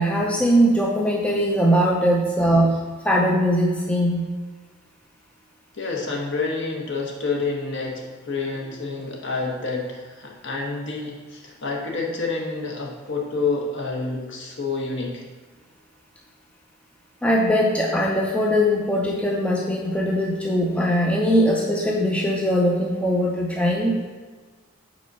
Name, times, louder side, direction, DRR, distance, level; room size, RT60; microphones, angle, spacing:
voice 1, 0.0-4.3 17.2-24.0, equal, 5° left, -2 dB, 0.5 m, -21 dB
voice 2, 5.7-15.2, left 3 dB, 55° left, 0 dB, 1.2 m, -28 dB
5.3 x 4.2 x 5.4 m, 1.4 s
head